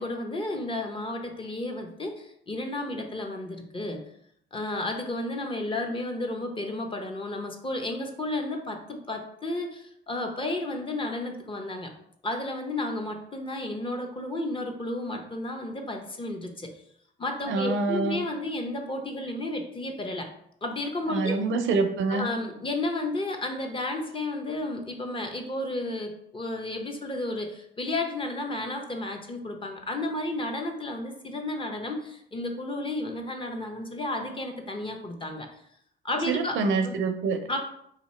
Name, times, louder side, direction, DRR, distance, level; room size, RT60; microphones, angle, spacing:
voice 1, 0.0-4.0 4.5-11.9 12.2-16.7 17.2-20.3 20.6-21.4 22.1-35.5 36.0-36.6 36.8-37.0 37.5-37.6, left 2 dB, 25° left, 3 dB, 0.7 m, -32 dB
voice 2, 17.5-18.2 21.1-22.3 36.3-37.4, right 4 dB, 75° right, 7 dB, 0.5 m, -26 dB
2.9 x 2.7 x 4.1 m, 0.70 s
cardioid pair, 90°, 20 cm